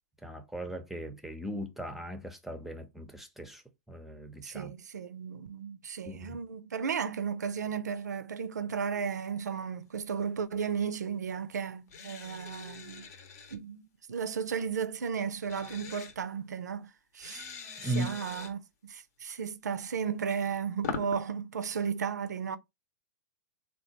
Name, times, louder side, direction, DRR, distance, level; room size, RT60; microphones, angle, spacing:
voice 1, 0.2-3.6 3.9-4.7 6.1-6.4 17.8-18.2, right 1 dB, ahead, 0.5 m, -38 dB
voice 2, 4.4-13.1 13.5-16.9 17.1-17.5 17.8-18.6 18.9-22.6, right 6 dB, 85° right, 0.4 m, -34 dB
sound 1, 11.9-13.6 15.5-16.2 17.2-18.5 20.2-21.2, left 5 dB, 65° left, 0.8 m, -42 dB
3.4 x 2.3 x 2.8 m
hypercardioid pair, 115°, 9 cm